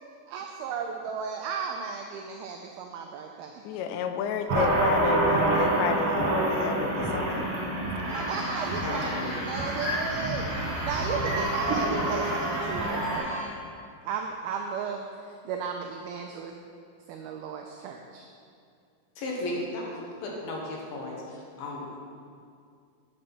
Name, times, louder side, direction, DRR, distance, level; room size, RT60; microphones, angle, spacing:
voice 1, 0.3-3.6 4.6-4.7 8.1-13.5 14.0-16.5 17.1-18.3, right 6 dB, 90° right, 3 dB, 2.1 m, -35 dB
voice 2, 3.7-7.5, left 7 dB, 85° left, 8 dB, 2.8 m, -31 dB
sound 1, 4.5-13.2, right 1 dB, 50° right, 2.3 m, -27 dB
sound 2, 8.0-13.4, equal, 25° left, 0.6 m, -38 dB
voice 3, 8.5-9.3 19.2-21.9, left 1 dB, 65° left, -2 dB, 2.9 m, -35 dB
9.1 x 6.4 x 6.0 m, 2.3 s
omnidirectional pair, 5.0 m